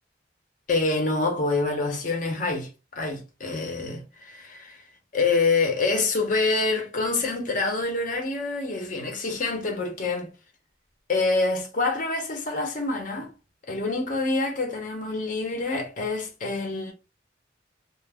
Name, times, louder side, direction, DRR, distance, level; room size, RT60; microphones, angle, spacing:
voice 1, 0.7-4.8 5.1-10.3 11.1-13.3 13.7-16.9, left 3 dB, 45° left, 0.7 m, -26 dB
2.1 x 2.0 x 3.4 m
head